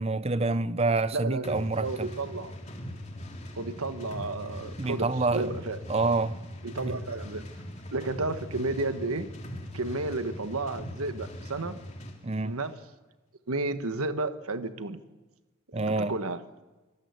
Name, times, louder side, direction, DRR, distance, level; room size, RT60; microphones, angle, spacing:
voice 1, 0.0-2.1 4.8-5.5 5.9-6.4 6.9-7.0 12.2-12.6 15.7-16.2, right 3 dB, 30° right, 0.7 m, -27 dB
voice 2, 1.1-2.6 3.5-5.8 6.6-7.5 7.9-9.3 9.7-11.8 12.4-12.8 13.5-15.0 15.8-16.4, right 2 dB, 90° right, 1.4 m, -32 dB
sound 1, 1.4-12.2, equal, 30° left, 3.2 m, -41 dB
25.0 x 18.5 x 8.2 m
head